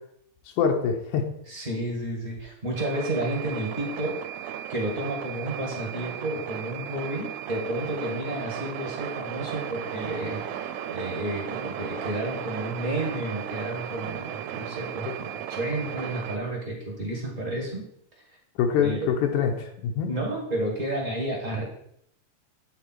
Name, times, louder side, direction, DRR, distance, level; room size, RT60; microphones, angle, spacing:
voice 1, 0.6-1.3 18.6-20.1, left 7 dB, 90° left, 3 dB, 2.3 m, -24 dB
voice 2, 1.5-4.2 4.7-17.8 18.3-18.4 18.8-19.1 20.1-21.6, right 1 dB, 30° right, -2 dB, 1.7 m, -31 dB
sound 1, 2.8-16.4, right 10 dB, 85° right, 2.0 m, -35 dB
9.1 x 3.6 x 4.5 m, 0.73 s
omnidirectional pair, 3.4 m